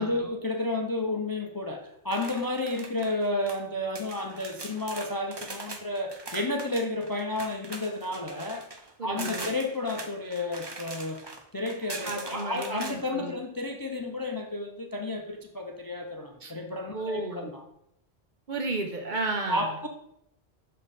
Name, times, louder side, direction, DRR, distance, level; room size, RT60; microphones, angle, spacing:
voice 1, 0.0-8.7 9.0-11.2 11.5-17.6 19.5-19.9, left 2 dB, 25° left, 2 dB, 0.5 m, -31 dB
sound 1, 2.1-3.6 4.0-12.9, right 2 dB, 25° right, 0.7 m, -41 dB
voice 2, 9.0-9.5 12.0-13.3 16.4-16.5 16.9-17.5 18.5-19.7, right 3 dB, 45° right, 4 dB, 1.0 m, -33 dB
6.5 x 5.4 x 4.1 m, 0.76 s
omnidirectional pair, 1.2 m